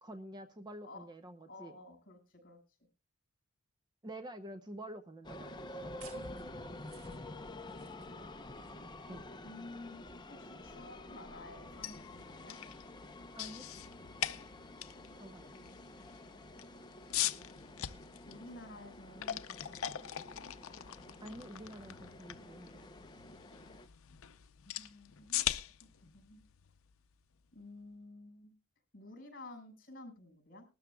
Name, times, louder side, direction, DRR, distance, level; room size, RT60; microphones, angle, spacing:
voice 1, 0.0-1.7 4.0-6.0 9.1-9.3 13.3-13.7 15.2-15.7 21.2-22.9, right 1 dB, 20° right, 9 dB, 0.6 m, -48 dB
voice 2, 1.5-2.8 7.1-8.5 9.4-10.0 10.3-12.6 15.5-16.0 17.8-20.5 24.6-25.4 25.9-26.4 27.5-28.5 28.9-30.7, left 2 dB, 40° left, 4 dB, 5.4 m, -53 dB
sound 1, 5.2-23.9, left 1 dB, 20° left, 0.7 m, -49 dB
sound 2, 6.0-12.0, right 2 dB, 85° right, 1.7 m, -58 dB
sound 3, 11.6-27.5, left 12 dB, 70° left, 0.6 m, -42 dB
20.0 x 13.0 x 2.3 m, 0.30 s
head